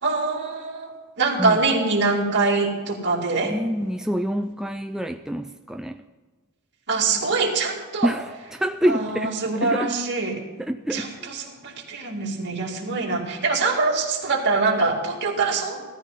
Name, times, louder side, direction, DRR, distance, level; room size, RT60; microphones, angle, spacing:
voice 1, 0.0-3.5 6.9-8.1 8.9-10.4 10.9-15.8, right 3 dB, 55° right, -1 dB, 2.5 m, -24 dB
voice 2, 3.4-6.0 8.0-10.0 10.6-11.3, equal, ahead, 6 dB, 0.3 m, -27 dB
15.5 x 13.5 x 4.1 m, 1.4 s
head